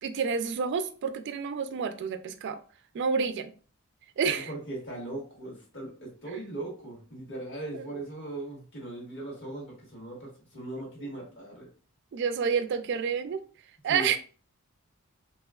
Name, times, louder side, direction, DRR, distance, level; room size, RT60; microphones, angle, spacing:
voice 1, 0.0-2.6 2.9-3.5 4.2-4.5 7.7-7.9 10.8-10.9 12.1-13.4 13.8-14.2, right 6 dB, 55° right, 0.3 m, -29 dB
voice 2, 4.3-11.7 13.9-14.1, right 2 dB, 55° left, 1.6 m, -39 dB
3.3 x 2.9 x 2.3 m
head